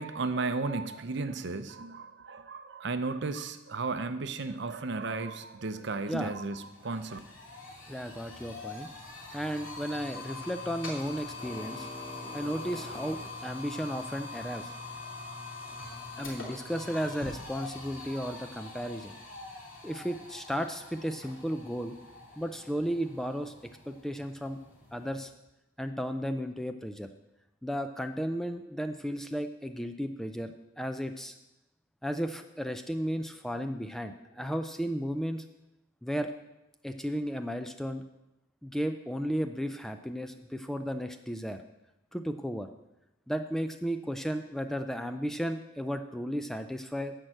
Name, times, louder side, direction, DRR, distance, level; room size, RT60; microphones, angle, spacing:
voice 1, 0.0-7.2, right 3 dB, 60° right, 10 dB, 0.6 m, -34 dB
sound 1, 5.8-5.9 6.2-25.2, left 3 dB, 70° left, 2.9 m, -44 dB
voice 2, 7.9-8.9 9.3-11.9 12.3-14.7 16.2-19.1 19.8-22.0 22.4-23.5 23.9-24.6 24.9-25.3 25.8-27.1 27.6-31.4 32.0-35.4 36.0-36.3 36.8-38.0 38.6-41.6 42.1-42.7 43.3-47.1, equal, ahead, 7 dB, 0.3 m, -34 dB
10.5 x 4.7 x 7.6 m, 0.95 s
head